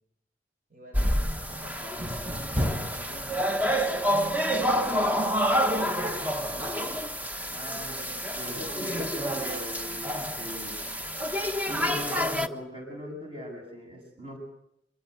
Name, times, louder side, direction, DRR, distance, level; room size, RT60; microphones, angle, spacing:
voice 1, 0.7-3.7 4.1-7.1, equal, 50° right, 2 dB, 7.2 m, -47 dB
sound 1, 0.9-12.5, equal, 10° right, 1.2 m, -28 dB
voice 2, 7.5-8.0 8.3-10.8 11.7-14.4, equal, 30° right, 3 dB, 7.8 m, -40 dB
25.5 x 22.5 x 8.1 m, 0.76 s
head